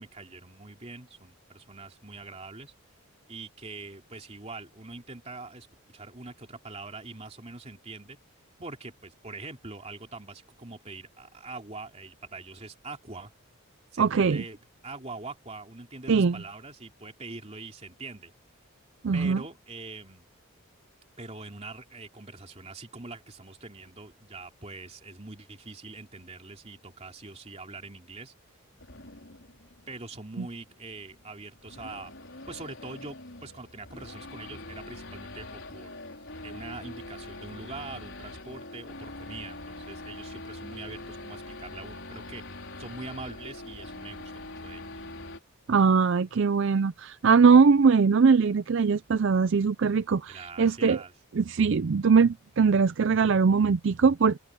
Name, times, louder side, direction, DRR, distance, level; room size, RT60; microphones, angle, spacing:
voice 1, 0.0-2.7 3.3-8.2 8.6-13.3 13.9-18.3 19.1-20.3 21.2-28.3 29.9-32.1 32.5-35.9 36.4-45.0 50.3-51.1, right 3 dB, 30° right, 2.9 m, -43 dB
voice 2, 14.0-14.4 16.1-16.4 19.0-19.4 30.4-30.5 45.7-51.0 51.4-54.4, right 5 dB, 55° right, 0.4 m, -21 dB
Race car auto racing / Idling / Accelerating revving vroom, 28.8-45.4, left 2 dB, 60° left, 5.1 m, -43 dB
head